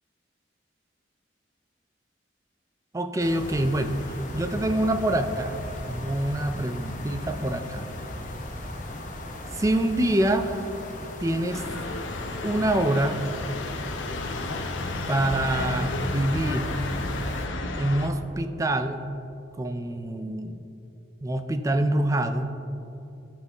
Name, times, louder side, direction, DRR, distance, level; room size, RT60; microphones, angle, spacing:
voice 1, 2.9-5.6 5.9-7.8 9.5-10.6 11.2-11.6 12.4-13.2 15.1-16.7 17.8-19.1 19.6-20.6 21.2-22.5, right 1 dB, 15° right, 8 dB, 0.4 m, -26 dB
sound 1, 3.2-17.5, left 1 dB, 45° left, 0.9 m, -36 dB
sound 2, 11.5-18.1, left 3 dB, 90° left, 0.7 m, -33 dB
14.0 x 5.4 x 3.5 m, 2.8 s
head